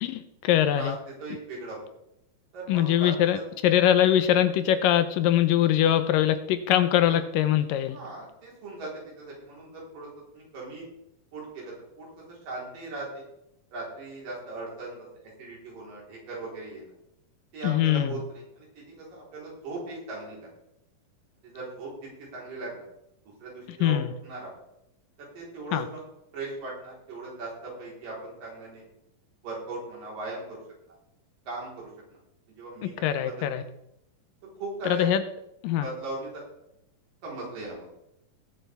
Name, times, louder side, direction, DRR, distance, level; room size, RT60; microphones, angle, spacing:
voice 1, 0.0-1.0 2.7-8.0 17.6-18.2 23.8-24.1 25.7-25.9 32.8-33.6 34.8-35.2 35.6-35.9, left 11 dB, 80° left, 10 dB, 2.4 m, -23 dB
voice 2, 1.2-1.8 2.5-3.1 7.9-8.9 9.2-10.9 11.3-13.2 13.7-16.9 17.5-20.5 21.5-21.9 22.3-22.9 23.4-24.5 25.2-26.0 26.3-28.8 29.4-30.6 31.5-31.9 32.6-33.5 34.6-35.1 35.8-36.4 37.2-37.9, right 3 dB, 75° right, -4 dB, 5.6 m, -38 dB
19.5 x 8.2 x 3.5 m, 0.81 s
omnidirectional pair, 4.0 m